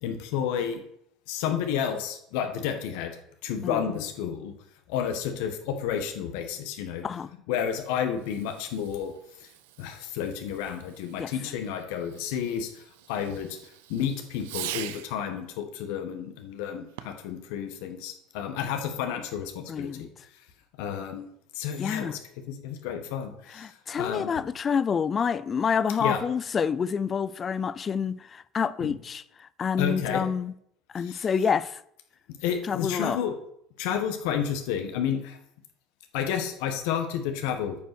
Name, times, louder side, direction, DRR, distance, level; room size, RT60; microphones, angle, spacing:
voice 1, 0.0-0.8 1.3-3.2 3.4-4.5 4.9-7.0 7.5-9.1 9.4-9.5 9.8-20.1 20.8-21.3 21.5-22.2 22.5-24.3 26.0-26.2 28.8-28.9 29.8-30.2 31.0-31.3 32.4-33.3 33.8-35.4 36.1-37.8, left 8 dB, 75° left, 1.5 m, -31 dB
Fireworks, 8.1-15.2 16.9-17.4, right 13 dB, 85° right, 0.6 m, -43 dB
voice 2, 19.7-20.1 21.8-22.2 23.6-29.2 29.6-30.5 30.9-31.8 32.7-33.2, left 6 dB, 30° left, 0.4 m, -28 dB
9.2 x 5.6 x 6.2 m
supercardioid pair, 110°, 0 cm